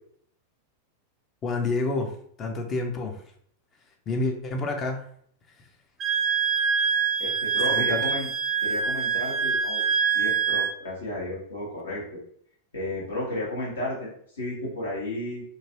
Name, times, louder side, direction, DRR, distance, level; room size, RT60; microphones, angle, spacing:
voice 1, 1.4-2.1 2.4-3.2 4.1-5.0 7.7-8.1, left 3 dB, 25° left, 3 dB, 0.5 m, -28 dB
Wind instrument woodwind instrument, 6.0-10.7, right 6 dB, 30° right, 0.3 m, -25 dB
voice 2, 7.2-8.3 8.6-9.8 10.1-12.2 12.7-15.4, left 1 dB, 70° left, -4 dB, 1.3 m, -33 dB
3.0 x 2.5 x 2.8 m, 0.63 s
figure-of-eight pair, 90°, 0 cm